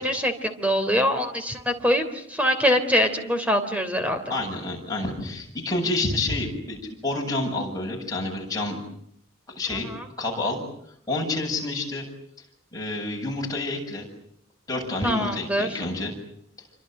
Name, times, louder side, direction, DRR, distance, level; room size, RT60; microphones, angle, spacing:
voice 1, 0.0-4.3 9.9-10.0 15.0-15.8, equal, 5° right, 7 dB, 3.4 m, -24 dB
voice 2, 4.3-8.8 9.5-9.9 10.2-10.6 11.1-12.1 12.7-14.1 14.7-16.1, left 2 dB, 15° left, 0 dB, 7.9 m, -28 dB
28.5 x 25.0 x 7.9 m, 0.70 s
head